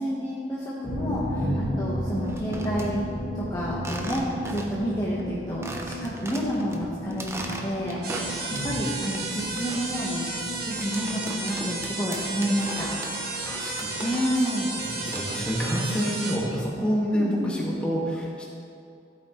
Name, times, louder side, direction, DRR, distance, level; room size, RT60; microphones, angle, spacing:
voice 1, 0.0-3.0 3.3-8.4 8.6-10.2 10.7-12.9 13.2-13.5 14.0-14.7 17.1-17.6, equal, 20° left, -7 dB, 1.2 m, -29 dB
sound 1, 0.8-16.2 16.5-16.6 16.9-17.0, equal, 40° left, 1.5 m, -36 dB
voice 2, 1.4-1.7 8.5-8.7 13.4-14.0 14.7-18.5, equal, 5° left, -5 dB, 1.9 m, -28 dB
sound 2, 2.2-2.9 3.8-4.9 5.2-5.3 5.6-6.8 7.1-8.7 9.0-14.5 14.8-16.4, right 1 dB, 15° right, 0.8 m, -39 dB
sound 3, 8.0-16.4, right 3 dB, 60° right, 1.6 m, -33 dB
14.0 x 8.3 x 3.2 m, 2.6 s
head